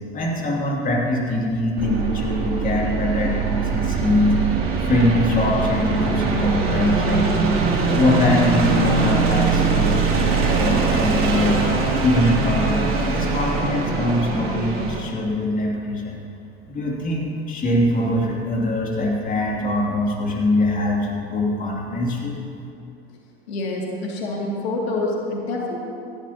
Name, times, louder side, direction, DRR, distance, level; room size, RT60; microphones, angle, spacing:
voice 1, 0.1-4.6 4.9-7.6 7.9-11.7 12.0-16.2 16.7-22.4, left 1 dB, 25° left, -2 dB, 2.8 m, -22 dB
sound 1, 1.8-15.0, right 4 dB, 45° right, 2.9 m, -22 dB
voice 2, 23.5-25.8, left 2 dB, 75° left, -2 dB, 2.7 m, -26 dB
18.5 x 15.0 x 3.0 m, 2.6 s
hypercardioid pair, 85°, 31 cm